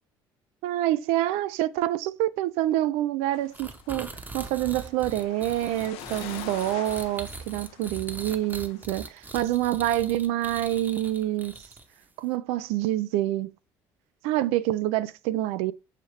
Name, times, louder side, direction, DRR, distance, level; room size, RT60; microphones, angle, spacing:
voice 1, 0.6-11.6 12.2-13.5 14.2-15.7, right 14 dB, 75° right, 0.4 m, -27 dB
sound 1, 3.3-8.8, left 12 dB, 70° left, 0.4 m, -45 dB
sound 2, 3.5-12.0, right 3 dB, 15° right, 0.8 m, -41 dB
6.6 x 2.3 x 3.1 m
hypercardioid pair, 60°, 10 cm